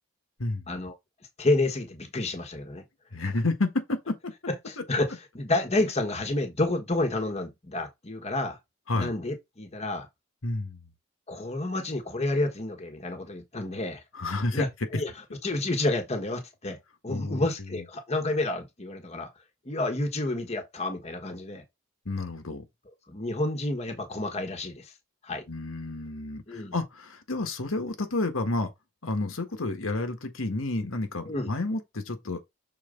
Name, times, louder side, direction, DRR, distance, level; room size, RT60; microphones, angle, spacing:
voice 1, 0.4-0.8 3.1-4.3 4.8-4.9 8.9-9.1 10.4-10.9 14.1-14.6 14.9-15.0 17.1-17.8 22.0-22.7 25.5-28.7 29.0-32.4, left 2 dB, 90° left, 1.6 m, -30 dB
voice 2, 1.4-2.8 4.7-8.6 8.9-10.1 11.3-14.0 14.5-14.7 14.9-15.1 15.4-16.8 17.0-19.3 19.6-21.6 23.1-24.9 25.2-25.4 26.5-26.7 31.3-31.5, left 2 dB, 30° left, 1.4 m, -29 dB
6.6 x 4.3 x 3.9 m
head